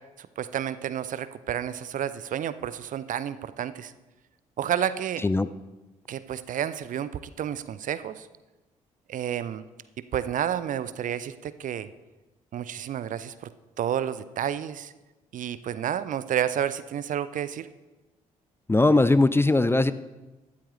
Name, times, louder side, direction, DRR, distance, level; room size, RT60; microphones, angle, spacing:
voice 1, 0.2-3.9 4.6-5.2 6.1-8.3 9.1-9.6 10.1-11.9 12.5-13.3 13.8-14.9 15.3-17.7, right 10 dB, 45° right, 15 dB, 0.6 m, -30 dB
voice 2, 18.7-19.9, left 2 dB, 15° left, 15 dB, 0.5 m, -20 dB
12.5 x 12.0 x 3.4 m, 1.1 s
figure-of-eight pair, 40°, 18 cm